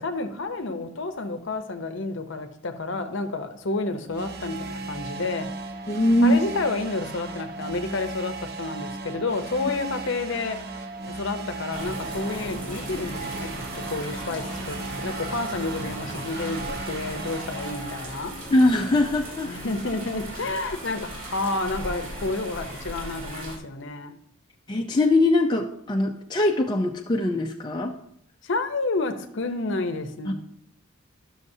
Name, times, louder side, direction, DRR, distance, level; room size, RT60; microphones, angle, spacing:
voice 1, 0.0-5.5 6.2-13.5 13.9-18.4 19.4-24.1 28.4-30.3, left 3 dB, 55° left, 7 dB, 0.7 m, -30 dB
sound 1, 4.1-17.8, right 3 dB, 45° right, 0.6 m, -36 dB
voice 2, 5.9-6.4 18.5-19.6 24.7-27.9 30.3-30.4, left 1 dB, 20° left, 1 dB, 0.4 m, -21 dB
sound 2, 11.7-23.6, right 1 dB, 60° right, 1.9 m, -37 dB
12.0 x 6.4 x 2.7 m, 0.69 s
head